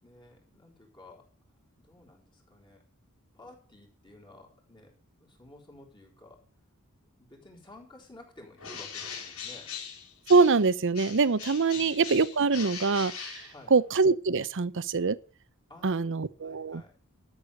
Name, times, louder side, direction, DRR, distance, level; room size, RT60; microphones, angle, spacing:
voice 1, 0.0-1.3 1.8-2.8 3.3-6.5 7.2-9.7 11.7-12.0 13.5-13.7 15.7-17.0, left 2 dB, 20° left, 4.0 m, -53 dB
Bird, 8.6-10.7 10.9-14.0, left 7 dB, 70° left, 5.1 m, -41 dB
voice 2, 10.3-13.3 13.7-15.2 15.8-16.8, right 4 dB, 60° right, 0.7 m, -24 dB
13.0 x 7.0 x 6.8 m
head